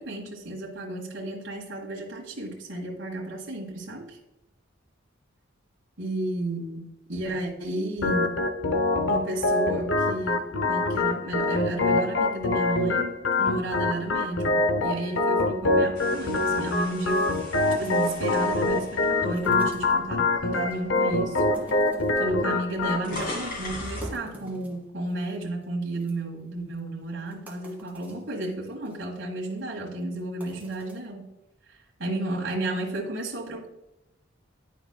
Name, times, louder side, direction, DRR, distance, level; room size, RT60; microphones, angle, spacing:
voice 1, 0.0-4.2 6.0-8.4 9.1-17.2 17.8-21.4 22.2-31.3 31.7-33.7, right 1 dB, 70° right, -2 dB, 1.4 m, -32 dB
Organ, 8.0-23.0, left 2 dB, 70° left, 0.7 m, -25 dB
sound 1, 15.9-20.2 20.7-20.9 21.8-21.9 22.1-24.2, left 1 dB, 50° left, 2.5 m, -39 dB
sound 2, 17.1-18.1 19.3-20.1 20.5-21.0 21.4-22.3 22.7-22.8 23.2-23.3 23.7-25.3 25.6-25.7 26.0-26.1 26.8-26.9 27.3-28.2 28.7-29.0 29.4-29.6 30.2-31.0, right 2 dB, 10° right, 1.6 m, -45 dB
11.0 x 4.7 x 2.3 m, 0.95 s
head